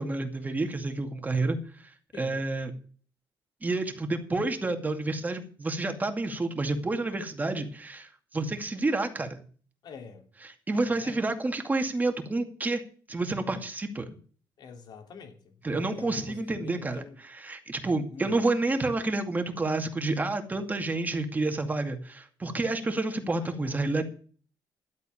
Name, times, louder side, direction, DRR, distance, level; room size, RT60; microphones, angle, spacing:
voice 1, 0.0-2.7 3.6-9.4 10.4-12.8 13.1-14.1 15.6-24.0, right 2 dB, 20° right, 2.3 m, -29 dB
voice 2, 2.1-2.5 9.8-10.3 10.9-11.2 14.6-17.2 18.1-18.4 23.4-23.8, left 5 dB, 60° left, 3.1 m, -46 dB
12.0 x 8.4 x 7.2 m
cardioid pair, 105°, 8 cm